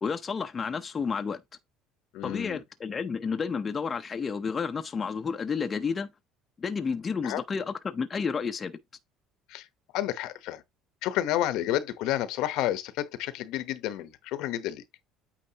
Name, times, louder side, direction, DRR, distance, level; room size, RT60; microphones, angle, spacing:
voice 1, 0.0-1.4 2.2-6.1 6.6-8.8, left 5 dB, 25° left, 0.6 m, -31 dB
voice 2, 2.1-2.6 7.2-7.4 9.5-9.7 9.9-10.6 11.0-14.8, left 13 dB, 70° left, 0.9 m, -30 dB
8.7 x 4.4 x 2.8 m
cardioid pair, 130°, 0 cm